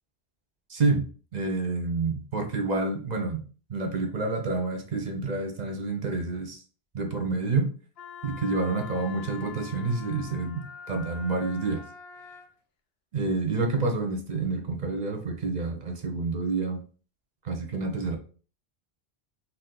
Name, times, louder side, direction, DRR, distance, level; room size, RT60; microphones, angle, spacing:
voice 1, 0.7-1.1 1.3-3.4 3.7-6.6 6.9-7.7 8.2-11.8 13.1-16.8 17.4-18.2, right 3 dB, 50° right, 4 dB, 0.7 m, -28 dB
Wind instrument woodwind instrument, 8.0-12.5, left 6 dB, 75° left, 0.8 m, -44 dB
2.6 x 2.4 x 3.6 m, 0.39 s
omnidirectional pair, 1.1 m